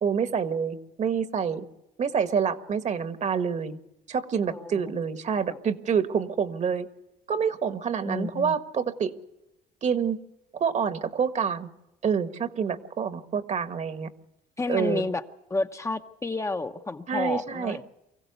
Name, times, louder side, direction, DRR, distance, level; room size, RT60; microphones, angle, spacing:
voice 1, 0.0-1.7 2.0-3.8 4.1-6.9 7.3-9.1 9.8-10.2 10.5-11.7 12.0-14.1 14.7-15.1 17.1-17.8, right 6 dB, 45° right, 10 dB, 1.4 m, -27 dB
voice 2, 4.5-5.0 8.1-8.6 14.6-15.2 15.5-17.8, left 3 dB, 15° left, 7 dB, 0.8 m, -31 dB
24.5 x 15.5 x 8.1 m, 0.92 s
cardioid pair, 110°, 17 cm